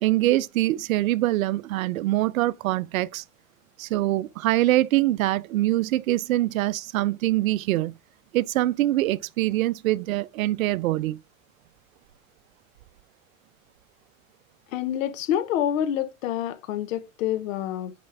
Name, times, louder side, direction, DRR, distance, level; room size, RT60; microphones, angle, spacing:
voice 1, 0.0-3.2 3.8-7.9 8.3-11.2, right 16 dB, 80° right, 0.5 m, -24 dB
voice 2, 14.7-17.9, left 10 dB, 75° left, 1.0 m, -27 dB
6.7 x 5.0 x 3.3 m
hypercardioid pair, 95°, 40 cm